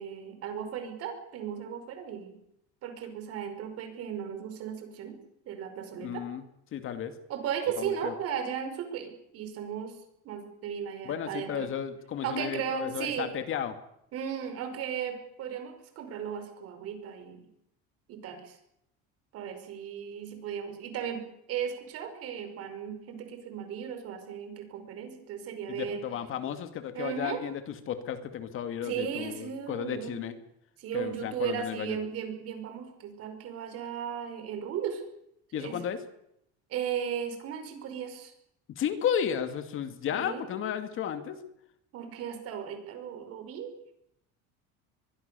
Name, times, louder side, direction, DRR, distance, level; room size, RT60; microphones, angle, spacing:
voice 1, 0.0-2.4 2.8-5.2 5.5-6.2 7.3-10.0 10.2-11.7 12.2-13.4 14.1-17.5 18.1-18.6 19.3-26.0 26.9-27.4 28.8-30.2 30.8-35.0 35.5-35.8 36.7-38.3 40.1-40.5 41.9-43.7, right 8 dB, 55° right, 7 dB, 5.3 m, -36 dB
voice 2, 6.0-6.4 6.7-7.1 7.8-8.1 11.0-13.8 25.7-30.4 30.9-32.0 35.5-36.0 38.7-41.4, left 9 dB, 45° left, 9 dB, 2.3 m, -33 dB
23.0 x 22.0 x 6.9 m, 0.79 s
cardioid pair, 150°, 29 cm